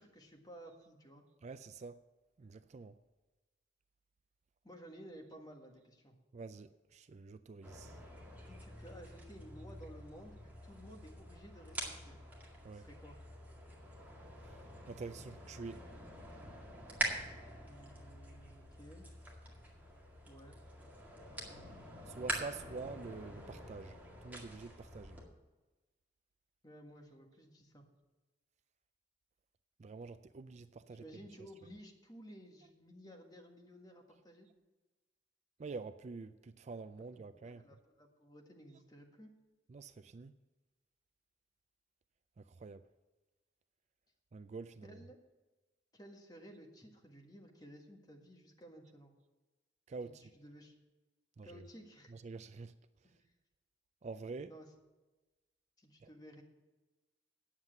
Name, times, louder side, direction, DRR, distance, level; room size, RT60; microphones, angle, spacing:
voice 1, 0.0-1.2 4.6-6.2 8.5-12.2 12.7-13.2 17.6-19.1 20.2-20.6 26.6-27.9 31.0-34.5 37.0-39.3 44.8-45.2 45.9-49.1 50.0-50.7 51.4-52.1 53.0-53.2 54.5-54.7 55.8-56.4, equal, 20° left, 1 dB, 1.6 m, -55 dB
voice 2, 1.4-2.0 2.4-3.0 6.3-8.0 12.6-12.9 14.9-15.8 22.1-25.2 29.8-31.0 35.6-37.6 39.7-40.3 42.4-42.9 44.3-45.0 49.9-50.3 51.4-51.6 52.1-52.7 54.0-54.5 56.0-56.1, right 4 dB, 40° right, 12 dB, 0.4 m, -47 dB
sound 1, 7.6-25.2, right 1 dB, 10° right, 2.0 m, -46 dB
9.6 x 7.4 x 7.9 m, 1.2 s
head